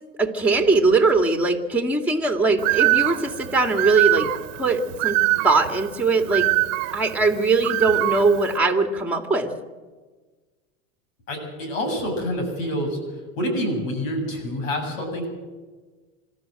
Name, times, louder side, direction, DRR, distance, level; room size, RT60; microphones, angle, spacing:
voice 1, 0.2-4.3 4.6-5.2 5.4-6.5 6.9-9.5, right 3 dB, 5° right, 5 dB, 2.4 m, -21 dB
Bird, 2.6-8.6, right 19 dB, 70° right, 1.2 m, -24 dB
voice 2, 11.3-15.3, equal, 75° left, 5 dB, 7.3 m, -27 dB
26.5 x 13.0 x 7.8 m, 1.4 s
hypercardioid pair, 95°, 39 cm